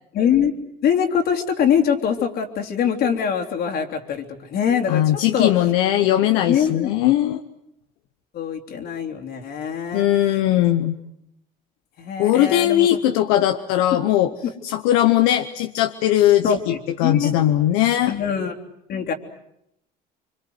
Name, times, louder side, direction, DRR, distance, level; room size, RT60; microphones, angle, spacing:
voice 1, 0.1-0.5 0.8-5.5 6.4-6.9 8.3-10.0 12.0-13.0 14.4-14.5 16.4-17.3 18.1-18.5 18.9-19.1, left 8 dB, 60° left, 4 dB, 3.3 m, -23 dB
voice 2, 4.9-7.4 9.9-11.0 12.2-14.3 14.6-18.1, left 13 dB, 85° left, 7 dB, 1.0 m, -19 dB
26.0 x 24.5 x 8.1 m, 0.78 s
supercardioid pair, 85°, 18 cm